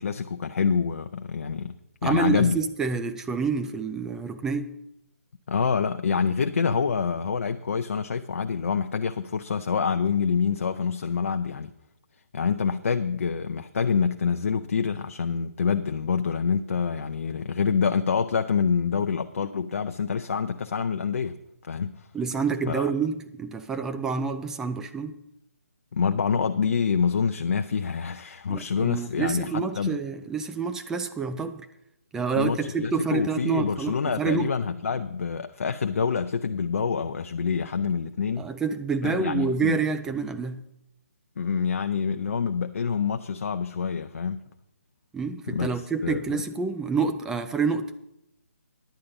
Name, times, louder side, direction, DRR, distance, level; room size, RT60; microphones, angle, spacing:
voice 1, 0.0-1.8 2.0-2.6 5.5-11.7 12.3-21.4 21.7-22.0 22.7-22.9 25.9-30.0 32.3-38.5 39.0-39.8 41.4-44.5 45.5-45.7 46.0-46.4, left 6 dB, 60° left, 0.5 m, -26 dB
voice 2, 2.0-4.7 22.1-25.2 28.5-31.6 32.1-34.5 38.4-40.6 45.1-47.9, right 5 dB, 5° right, 0.3 m, -28 dB
10.0 x 8.6 x 5.3 m
figure-of-eight pair, 145°, 8 cm